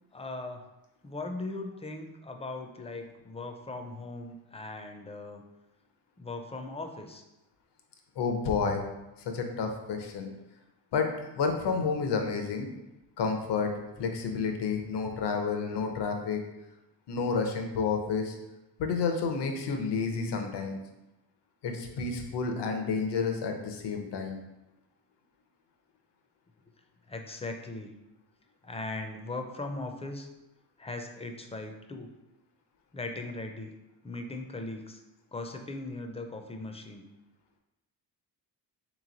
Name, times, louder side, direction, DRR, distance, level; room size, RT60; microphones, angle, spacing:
voice 1, 0.1-0.6 1.0-5.4 6.2-7.2 27.1-27.9 28.6-30.3 30.8-32.1 32.9-33.7 34.0-35.0 35.3-37.1, left 2 dB, 15° left, 4 dB, 0.4 m, -39 dB
voice 2, 8.2-8.8 9.2-10.3 10.9-11.1 11.4-12.7 13.2-13.7 14.0-16.4 17.1-18.4 18.8-20.8 21.6-24.4, left 5 dB, 75° left, 4 dB, 0.7 m, -30 dB
3.4 x 3.1 x 3.9 m, 0.96 s
cardioid pair, 90°, 41 cm